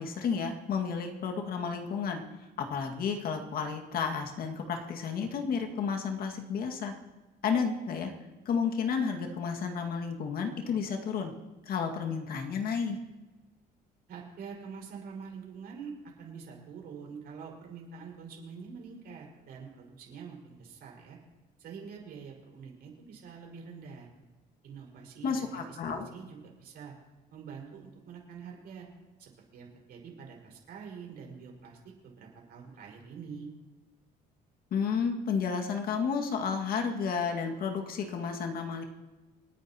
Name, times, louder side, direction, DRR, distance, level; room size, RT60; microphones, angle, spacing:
voice 1, 0.0-6.9 7.4-8.1 8.5-11.3 11.6-13.0 25.2-26.1 34.7-38.8, left 6 dB, 60° left, 3 dB, 2.1 m, -32 dB
voice 2, 14.1-15.9 16.2-21.2 21.6-24.1 24.6-26.9 27.3-28.9 29.2-31.8 32.0-33.5, right 6 dB, 70° right, -1 dB, 5.2 m, -46 dB
28.5 x 9.6 x 3.0 m, 1.2 s
cardioid pair, 110°, 17 cm